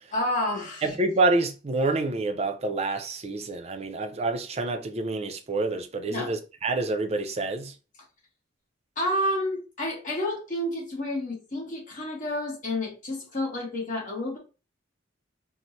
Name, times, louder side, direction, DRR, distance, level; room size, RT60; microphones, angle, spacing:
voice 1, 0.1-0.9 6.1-6.3 9.0-14.4, left 1 dB, 45° left, 1.2 m, -30 dB
voice 2, 0.8-7.7, right 2 dB, 35° right, 0.5 m, -27 dB
4.4 x 2.0 x 2.6 m
head